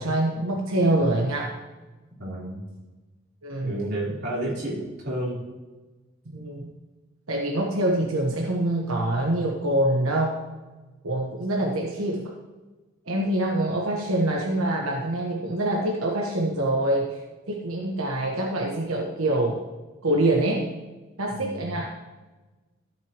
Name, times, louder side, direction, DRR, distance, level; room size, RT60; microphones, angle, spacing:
voice 1, 0.0-1.5 3.4-3.7 6.3-6.7 7.3-10.4 11.0-12.3 13.1-17.2 17.5-19.6 20.0-20.6 21.2-21.9, right 1 dB, 85° right, -1 dB, 1.3 m, -25 dB
voice 2, 2.2-2.6 3.6-5.4 21.3-21.7, right 1 dB, 50° right, -6 dB, 3.9 m, -31 dB
13.5 x 8.7 x 3.1 m, 1.2 s
head